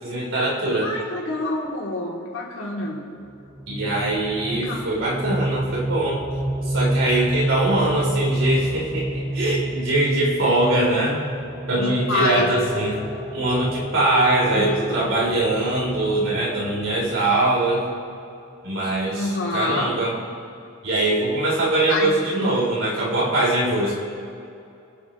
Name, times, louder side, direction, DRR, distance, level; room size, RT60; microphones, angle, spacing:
voice 1, 0.0-0.9 3.7-6.2 6.6-11.2 11.7-12.9 13.3-17.9 18.6-20.2 20.8-24.0, right 2 dB, 75° right, -4 dB, 3.7 m, -22 dB
voice 2, 0.7-3.0 4.4-4.8 11.8-12.5 14.4-15.0 19.1-19.9 21.9-22.1, left 2 dB, 80° left, -4 dB, 3.2 m, -27 dB
sound 1, 3.2-17.9, right 1 dB, 25° right, 1.4 m, -29 dB
25.5 x 8.9 x 3.2 m, 2.6 s
head